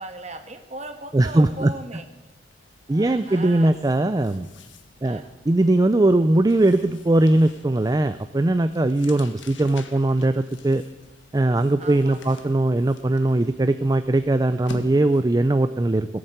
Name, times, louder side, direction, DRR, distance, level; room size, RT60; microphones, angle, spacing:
voice 1, 0.0-2.0 2.9-3.7 5.0-5.3 11.8-12.4, right 2 dB, 35° right, 7 dB, 1.5 m, -38 dB
voice 2, 1.1-1.7 2.9-4.5 5.0-10.8 11.3-16.1, right 2 dB, 20° right, 11 dB, 0.4 m, -20 dB
sound 1, 1.5-1.7 2.0-15.4, left 3 dB, 75° left, 1.4 m, -47 dB
17.0 x 8.7 x 7.9 m, 1.1 s
head